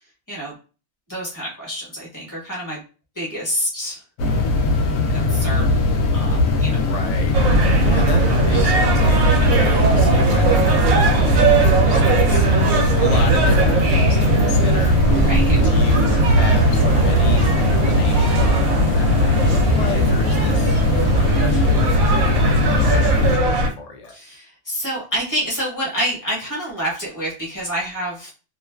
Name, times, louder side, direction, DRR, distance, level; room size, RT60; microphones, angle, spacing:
voice 1, 1.1-2.8 3.2-4.0 5.1-5.8 6.1-6.8 15.1-15.6 24.1-28.3, equal, 15° left, -4 dB, 1.0 m, -27 dB
sound 1, 4.2-23.4, left 2 dB, 90° left, 1.0 m, -20 dB
voice 2, 6.5-7.4 7.8-12.5 13.0-15.0 15.6-20.8 21.2-24.2, left 4 dB, 60° left, 2 dB, 0.4 m, -33 dB
sound 2, 7.3-23.7, right 3 dB, 85° right, 1.0 m, -19 dB
2.5 x 2.3 x 2.2 m, 0.34 s
omnidirectional pair, 1.4 m